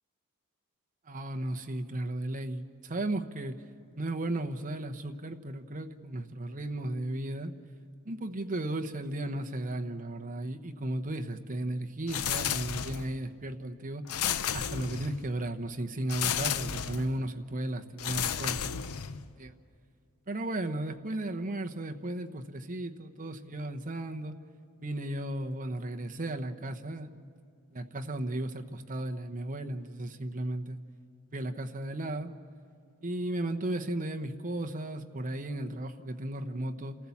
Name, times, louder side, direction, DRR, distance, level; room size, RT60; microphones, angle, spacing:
voice 1, 1.1-3.6 4.0-7.5 8.0-14.0 14.5-19.0 19.4-19.5 20.3-24.3 24.8-27.2 27.7-30.8 31.3-32.3 33.0-37.0, right 1 dB, 40° right, 5 dB, 1.0 m, -35 dB
sound 1, 12.1-13.2 14.1-15.3 16.1-17.1 18.0-19.3, left 8 dB, 90° left, 0.7 m, -32 dB
28.0 x 15.0 x 7.2 m, 2.5 s
head